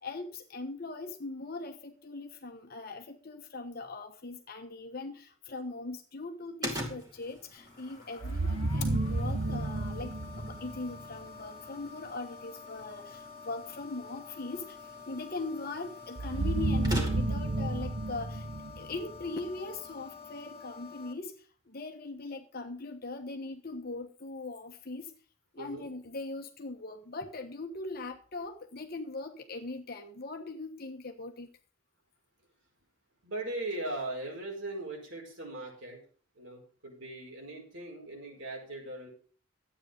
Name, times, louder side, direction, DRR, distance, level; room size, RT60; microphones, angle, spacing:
voice 1, 0.0-18.5 18.8-25.1 25.5-31.5, left 3 dB, 45° left, 5 dB, 1.1 m, -40 dB
sound 1, 6.6-17.5, equal, 20° right, 2.5 m, -44 dB
sound 2, 7.6-21.1, left 5 dB, 30° left, 2.5 m, -48 dB
sound 3, 8.2-11.2 16.2-19.4, right 2 dB, 85° right, 1.4 m, -31 dB
voice 2, 25.6-25.9 33.2-36.0 36.4-39.1, right 2 dB, 65° right, 0 dB, 5.0 m, -39 dB
12.5 x 8.8 x 5.3 m, 0.41 s
head